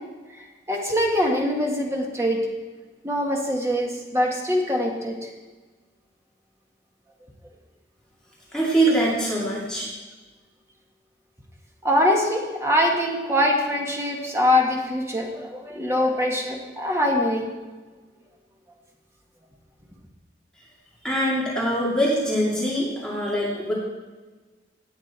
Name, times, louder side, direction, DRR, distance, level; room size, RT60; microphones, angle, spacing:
voice 1, 0.7-2.4 3.0-5.3 8.9-9.0 11.8-17.5, left 1 dB, 15° right, 0 dB, 1.8 m, -23 dB
voice 2, 8.5-9.9 21.0-23.7, right 1 dB, 5° left, -6 dB, 2.6 m, -23 dB
17.5 x 8.8 x 4.5 m, 1.3 s
head